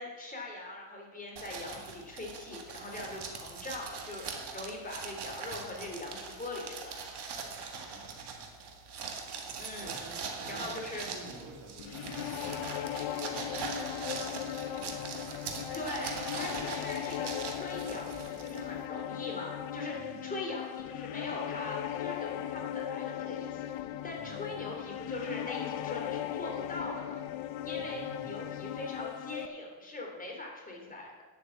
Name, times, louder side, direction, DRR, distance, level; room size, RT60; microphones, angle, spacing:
voice 1, 0.0-4.3 4.5-7.0 9.6-10.0 10.5-11.1 15.7-23.7 24.0-27.2 27.6-31.1, left 2 dB, 15° left, -1 dB, 3.5 m, -41 dB
sound 1, 1.4-18.9, right 5 dB, 55° right, 1.9 m, -42 dB
voice 2, 7.7-8.5 9.8-14.0 19.9-20.4 24.2-24.8 27.6-28.6, right 2 dB, 75° right, 0 dB, 2.8 m, -51 dB
sound 2, 11.8-29.5, left 11 dB, 70° left, 0.8 m, -38 dB
10.0 x 8.1 x 7.2 m, 1.4 s
cardioid pair, 110°, 48 cm